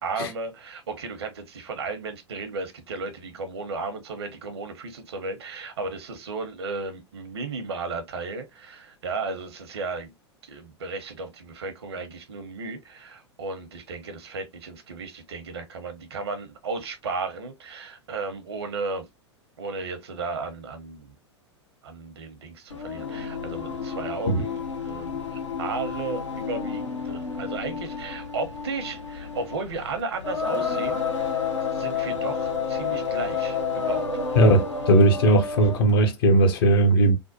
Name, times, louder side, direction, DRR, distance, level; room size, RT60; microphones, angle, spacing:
voice 1, 0.0-10.1 10.4-19.1 19.6-21.2 21.8-31.4 31.7-34.1, right 3 dB, 60° right, 0.9 m, -34 dB
Singing, 22.7-35.9, left 5 dB, 80° left, 1.1 m, -30 dB
voice 2, 34.3-37.2, right 1 dB, 50° left, 0.8 m, -18 dB
3.5 x 2.2 x 2.6 m
figure-of-eight pair, 95°, 15 cm